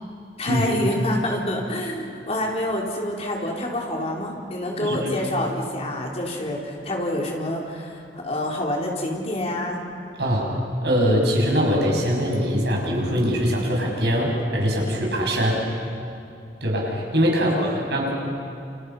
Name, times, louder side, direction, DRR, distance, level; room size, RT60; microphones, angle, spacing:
voice 1, 0.4-9.8 17.3-17.8, left 1 dB, 35° left, -1 dB, 4.1 m, -27 dB
voice 2, 4.8-5.2 10.2-10.5 10.8-15.6 16.6-18.1, equal, 70° right, -1 dB, 6.7 m, -22 dB
29.0 x 28.5 x 5.7 m, 2.6 s
head